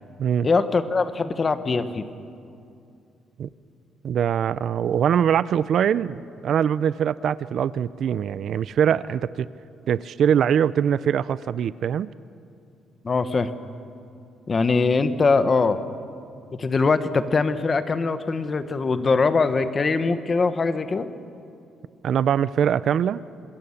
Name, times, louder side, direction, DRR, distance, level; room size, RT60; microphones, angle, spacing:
voice 1, 0.4-2.0 13.0-13.5 14.5-15.8 16.5-21.1, left 4 dB, 30° left, 11 dB, 1.1 m, -22 dB
voice 2, 4.0-9.5 9.9-12.1 22.0-23.2, right 8 dB, 55° right, 17 dB, 0.5 m, -22 dB
26.0 x 20.5 x 7.1 m, 2.5 s
cardioid pair, 140°, 0 cm